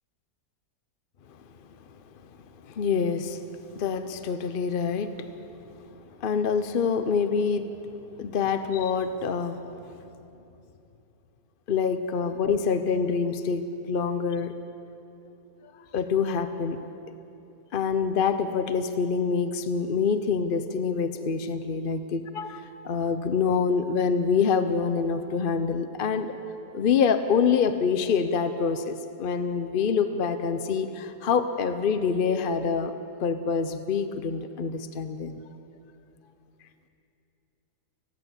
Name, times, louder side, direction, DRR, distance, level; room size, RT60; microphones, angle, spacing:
voice 1, 2.6-5.3 6.2-7.7 8.2-9.6 11.7-14.5 15.6-16.8 17.7-26.3 26.7-32.9 33.2-35.4, left 6 dB, 55° left, 9 dB, 0.6 m, -26 dB
19.5 x 16.5 x 8.1 m, 2.8 s
omnidirectional pair, 1.9 m